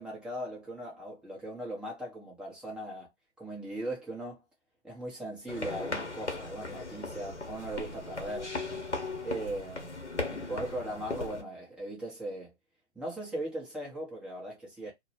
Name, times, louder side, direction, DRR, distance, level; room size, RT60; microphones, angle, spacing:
voice 1, 0.0-3.1 3.4-4.4 4.8-8.5 9.2-10.0 10.3-12.5 12.9-14.9, right 1 dB, 5° right, 0.6 m, -38 dB
sound 1, 5.5-11.4, left 3 dB, 85° left, 0.9 m, -37 dB
2.2 x 2.0 x 2.8 m
figure-of-eight pair, 120°, 34 cm